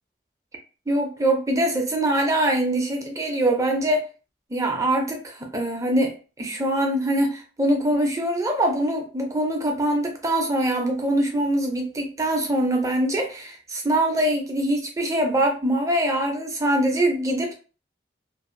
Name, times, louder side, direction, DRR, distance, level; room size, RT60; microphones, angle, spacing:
voice 1, 0.9-4.0 4.5-6.1 6.4-17.5, right 1 dB, 15° right, 2 dB, 0.5 m, -23 dB
2.6 x 2.4 x 2.5 m, 0.35 s
head